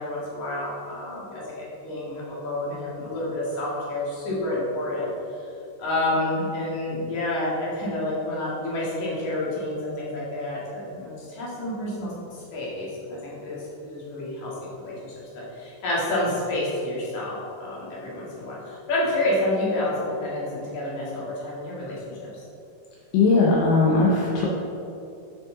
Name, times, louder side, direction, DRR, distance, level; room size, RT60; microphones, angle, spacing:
voice 1, 0.0-5.1 5.8-14.5 14.8-22.4, left 1 dB, 60° left, -7 dB, 3.1 m, -29 dB
voice 2, 23.1-24.5, left 3 dB, 80° left, -4 dB, 2.4 m, -19 dB
7.5 x 6.5 x 3.7 m, 2.8 s
omnidirectional pair, 3.8 m